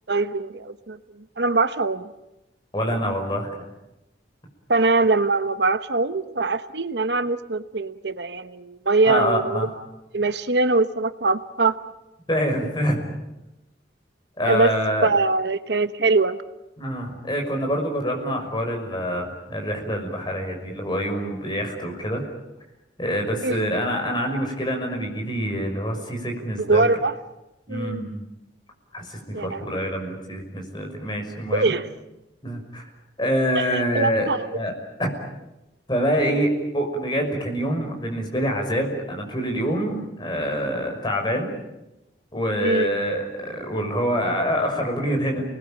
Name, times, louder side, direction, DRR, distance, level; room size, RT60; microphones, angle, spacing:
voice 1, 0.1-2.1 4.7-9.7 10.1-11.8 14.4-14.7 15.0-16.4 23.4-23.6 26.6-27.1 27.7-28.1 29.3-29.6 31.5-31.9 33.5-34.6 36.2-36.4 42.6-42.9, right 3 dB, 70° right, 12 dB, 1.0 m, -22 dB
voice 2, 2.7-3.5 9.1-9.7 12.3-13.1 14.4-15.1 16.8-22.2 23.0-26.8 27.7-28.2 28.9-31.7 32.4-32.9 33.2-34.3 34.6-34.7 35.0-35.1 35.9-41.5 42.3-45.4, equal, 25° left, 2 dB, 5.9 m, -26 dB
30.0 x 20.0 x 8.9 m, 0.96 s
head